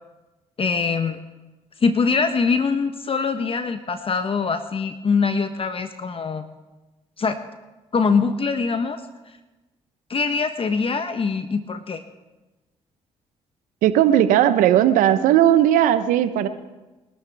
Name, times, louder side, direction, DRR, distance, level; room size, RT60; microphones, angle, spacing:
voice 1, 0.6-1.2 1.8-6.4 7.2-7.4 7.9-9.4 10.1-12.0, left 5 dB, 45° left, 9 dB, 1.1 m, -23 dB
voice 2, 13.8-16.5, right 11 dB, 80° right, 11 dB, 0.9 m, -17 dB
28.0 x 12.0 x 3.5 m, 1.1 s
hypercardioid pair, 50°, 14 cm